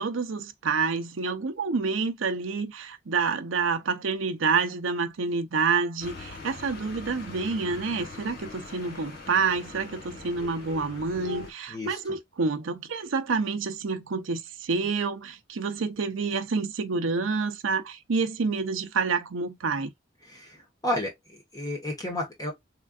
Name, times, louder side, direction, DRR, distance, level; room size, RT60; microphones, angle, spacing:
voice 1, 0.0-19.9, right 4 dB, 85° right, 0.6 m, -28 dB
sound 1, 6.0-11.5, left 4 dB, 55° left, 1.3 m, -41 dB
voice 2, 11.7-12.0 20.2-22.5, left 1 dB, 20° left, 1.2 m, -32 dB
3.7 x 3.3 x 2.3 m
head